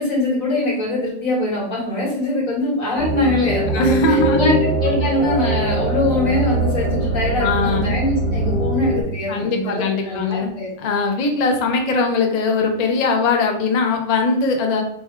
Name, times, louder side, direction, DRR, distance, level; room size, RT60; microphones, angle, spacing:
voice 1, 0.0-10.7, left 2 dB, 90° left, -4 dB, 1.9 m, -23 dB
sound 1, 3.0-9.0, right 2 dB, 15° left, 0.7 m, -22 dB
voice 2, 3.7-4.6 7.4-8.0 9.3-10.5 10.8-14.8, left 3 dB, 50° left, 3 dB, 0.5 m, -20 dB
3.5 x 2.2 x 4.3 m, 0.72 s
omnidirectional pair, 1.4 m